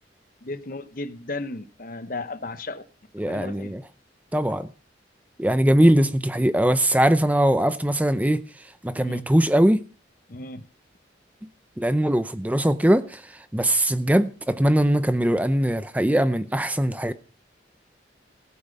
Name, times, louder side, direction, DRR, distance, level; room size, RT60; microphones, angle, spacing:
voice 1, 0.4-2.8 3.3-3.7 9.0-9.3 10.3-10.7, left 2 dB, 50° left, 0.9 m, -34 dB
voice 2, 3.2-3.8 4.3-4.7 5.4-9.8 11.8-17.1, right 1 dB, 10° right, 0.6 m, -21 dB
16.5 x 8.5 x 5.3 m
head